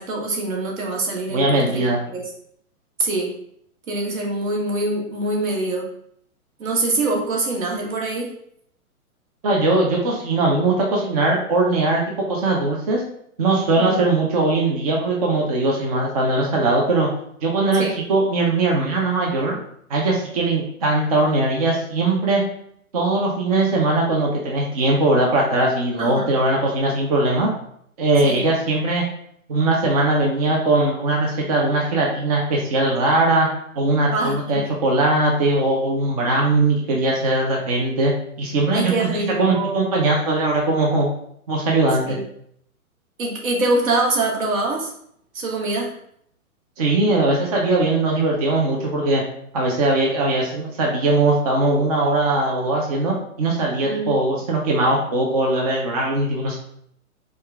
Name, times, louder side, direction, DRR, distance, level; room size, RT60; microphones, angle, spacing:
voice 1, 0.0-1.8 2.1-2.2 3.0-3.3 3.9-5.9 6.6-8.3 13.8-13.9 17.7-18.0 26.0-26.3 28.2-28.4 34.1-34.6 38.7-39.9 42.0-42.2 43.2-44.9 45.3-45.9 53.8-54.1, right 2 dB, 65° right, -1 dB, 1.5 m, -24 dB
voice 2, 1.3-2.0 9.4-13.0 13.4-17.1 17.4-19.6 19.9-22.4 22.9-27.5 28.0-29.0 29.5-33.5 33.8-38.1 38.4-41.1 41.5-42.2 46.8-49.2 49.5-56.6, right 2 dB, 25° right, -1 dB, 0.4 m, -20 dB
5.2 x 2.3 x 3.4 m, 0.69 s
hypercardioid pair, 135°, 44 cm